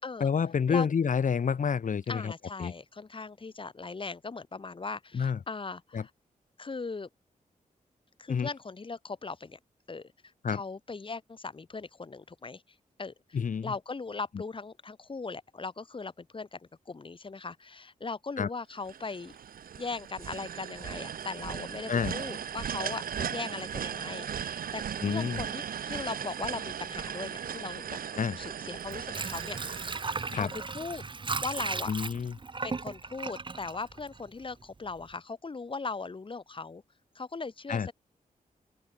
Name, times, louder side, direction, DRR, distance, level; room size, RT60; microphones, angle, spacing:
voice 1, 0.2-2.3 2.6-2.7 5.1-5.4 5.9-6.0 8.3-8.5 10.4-10.6 13.3-13.7 18.4-18.5 21.9-22.1 25.0-25.4 28.1-28.4 30.3-30.5 31.9-32.3 37.7-37.9, left 6 dB, 65° left, 3.2 m, -28 dB
voice 2, 2.1-6.1 6.6-7.1 8.2-9.6 9.9-10.1 10.5-12.6 13.0-16.6 16.9-19.3 19.7-28.0 28.4-31.1 31.4-31.9 32.6-36.8 37.2-37.9, left 4 dB, 35° left, 5.4 m, -39 dB
sound 1, 18.8-30.9, right 8 dB, 85° right, 1.3 m, -37 dB
Water / Sink (filling or washing), 28.7-34.6 35.0-35.1, right 4 dB, 35° right, 2.0 m, -36 dB
open air
wide cardioid pair, 120°, 15 cm